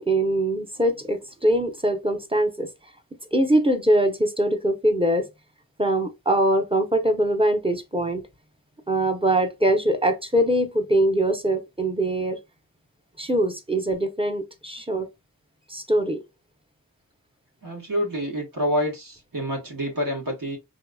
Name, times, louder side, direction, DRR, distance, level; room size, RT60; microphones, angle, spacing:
voice 1, 0.0-2.7 3.3-5.2 5.8-8.2 8.9-12.4 13.2-15.1 15.7-16.2, right 1 dB, 15° right, 0.7 m, -22 dB
voice 2, 17.6-20.6, equal, 70° right, 1.4 m, -27 dB
3.9 x 2.8 x 2.2 m
wide cardioid pair, 60°, 34 cm